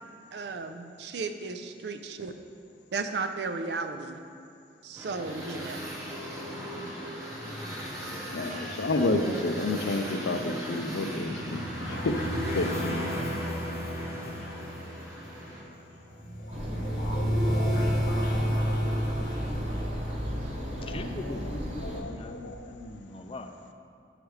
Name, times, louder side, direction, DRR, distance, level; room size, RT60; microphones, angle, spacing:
voice 1, 0.3-2.3 2.9-4.2 4.8-5.9, right 4 dB, 70° right, 8 dB, 0.4 m, -34 dB
sound 1, 4.9-15.6, equal, 15° right, 1.0 m, -39 dB
voice 2, 8.3-13.0 19.8-20.2 20.6-21.0 21.8-22.7, left 2 dB, 85° left, 6 dB, 0.5 m, -31 dB
sound 2, 11.1-21.2, equal, 55° left, 1.1 m, -31 dB
sound 3, 16.5-22.0, equal, 40° right, 0.8 m, -35 dB
voice 3, 20.8-23.5, left 2 dB, 30° left, 7 dB, 0.3 m, -40 dB
9.3 x 4.9 x 3.1 m, 2.5 s
head